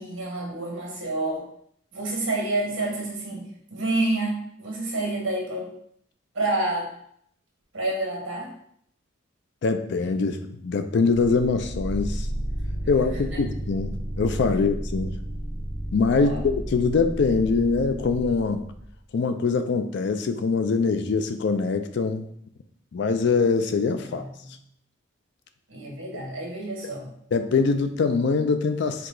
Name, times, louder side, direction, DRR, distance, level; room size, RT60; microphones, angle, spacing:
voice 1, 0.0-1.4 1.9-3.4 3.7-5.7 6.3-6.9 7.7-8.5 13.1-13.4 16.1-16.4 24.0-24.5 25.7-27.1, right 2 dB, 70° right, -2 dB, 1.4 m, -29 dB
voice 2, 9.6-12.3 12.9-15.2 15.9-18.6 19.1-22.3 22.9-24.2 27.3-29.1, left 4 dB, 60° left, 8 dB, 0.4 m, -23 dB
sound 1, 11.2-19.0, right 1 dB, ahead, 1.2 m, -32 dB
4.6 x 2.3 x 3.7 m, 0.68 s
head